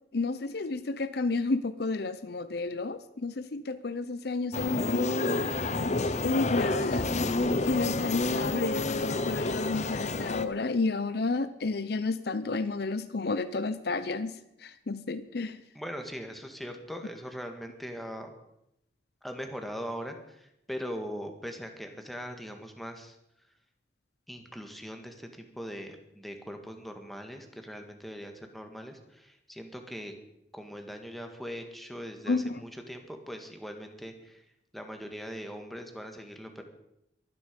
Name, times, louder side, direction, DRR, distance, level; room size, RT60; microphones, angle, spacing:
voice 1, 0.1-5.1 6.2-7.1 7.6-15.6 32.3-32.6, left 3 dB, 60° left, 13 dB, 0.7 m, -31 dB
sound 1, 4.5-10.4, left 2 dB, 40° left, 0.9 m, -29 dB
voice 2, 15.7-18.4 19.2-23.2 24.3-30.1 30.5-34.5 34.7-36.6, equal, ahead, 4 dB, 1.7 m, -41 dB
23.5 x 9.9 x 5.3 m, 0.82 s
head